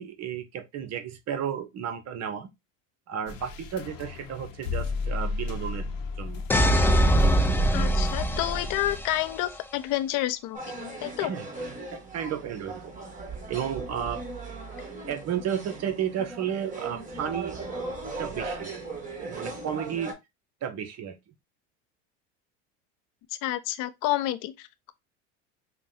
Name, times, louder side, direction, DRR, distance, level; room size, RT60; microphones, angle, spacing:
voice 1, 0.0-2.5 3.1-5.9 6.2-6.4 11.2-11.5 11.9-12.9 13.5-14.2 15.1-17.5 18.2-18.7 19.2-20.2 20.6-21.2, right 8 dB, 40° right, 0.8 m, -33 dB
sound 1, 3.3-9.0, left 4 dB, 80° left, 0.9 m, -35 dB
sound 2, 6.5-9.4, equal, 5° left, 0.5 m, -22 dB
voice 2, 7.7-10.7 11.0-11.3 23.4-24.9, left 14 dB, 55° left, 0.6 m, -29 dB
sound 3, 10.5-20.1, right 3 dB, 20° right, 1.4 m, -38 dB
5.5 x 2.2 x 2.7 m
supercardioid pair, 95°, 38 cm